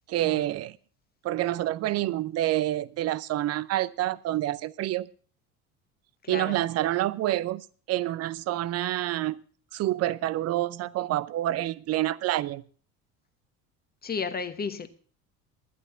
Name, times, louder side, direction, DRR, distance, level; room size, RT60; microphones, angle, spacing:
voice 1, 0.1-0.8 1.2-5.1 6.3-9.4 9.7-12.6, right 14 dB, 35° right, 0.6 m, -28 dB
voice 2, 6.2-6.6 14.0-14.9, left 5 dB, 20° left, 1.2 m, -33 dB
11.0 x 11.0 x 5.6 m
figure-of-eight pair, 65°, 42 cm